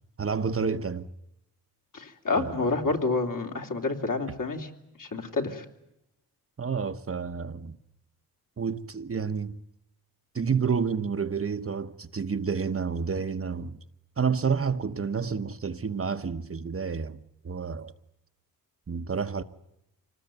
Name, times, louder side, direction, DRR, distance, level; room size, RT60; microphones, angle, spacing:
voice 1, 0.2-1.1 2.4-2.7 6.6-7.8 8.6-9.6 10.3-13.8 14.2-17.9 18.9-19.4, right 6 dB, 35° right, 1.0 m, -29 dB
voice 2, 1.9-4.7 5.0-5.6, left 3 dB, 55° left, 3.2 m, -28 dB
26.0 x 19.5 x 9.1 m
cardioid pair, 80°, 37 cm